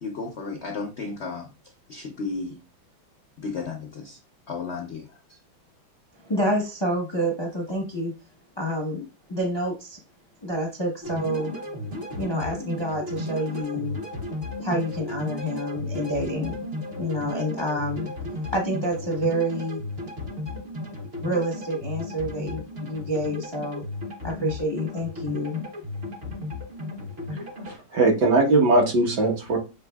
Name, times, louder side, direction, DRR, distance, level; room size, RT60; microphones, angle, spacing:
voice 1, 0.0-2.6 3.4-4.2 4.5-5.4, left 4 dB, 80° left, 0.6 m, -34 dB
voice 2, 6.2-8.1 8.6-10.0 10.4-11.5 12.2-14.0 14.6-16.6 16.9-18.1 18.5-19.8 21.2-23.8 24.2-25.6, equal, 25° left, 0.5 m, -28 dB
sound 1, 11.0-27.8, left 1 dB, 40° right, 0.9 m, -34 dB
voice 3, 27.3-29.6, right 2 dB, 65° right, 1.8 m, -21 dB
6.5 x 3.2 x 2.3 m
omnidirectional pair, 2.1 m